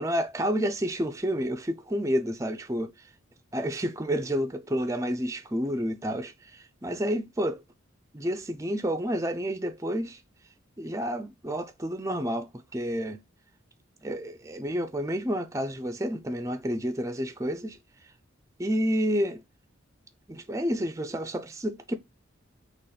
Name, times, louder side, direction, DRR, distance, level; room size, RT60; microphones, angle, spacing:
voice 1, 0.0-2.9 3.5-7.6 8.1-10.2 10.8-13.2 14.0-17.8 18.6-19.4 20.3-22.0, equal, 15° right, 0.4 m, -30 dB
3.9 x 3.0 x 4.1 m
head